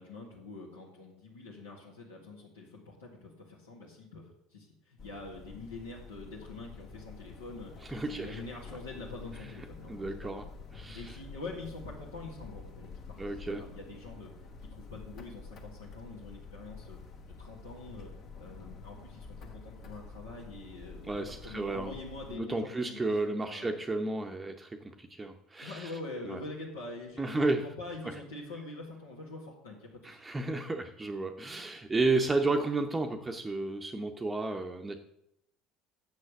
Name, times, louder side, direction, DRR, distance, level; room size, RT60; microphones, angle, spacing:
voice 1, 0.0-10.4 10.9-14.3 14.7-17.0 17.4-18.1 18.4-23.8 25.6-30.2, left 2 dB, 75° left, -4 dB, 2.0 m, -45 dB
sound 1, 5.0-22.4, left 4 dB, 45° left, 1.5 m, -48 dB
voice 2, 7.8-8.4 9.9-10.4 10.7-11.2 13.2-13.6 21.0-21.9 22.3-25.9 26.3-26.4 27.2-27.6 28.0-28.1 30.0-35.0, right 3 dB, 15° right, 4 dB, 0.8 m, -32 dB
7.4 x 6.4 x 7.8 m, 0.81 s
figure-of-eight pair, 65°, 0 cm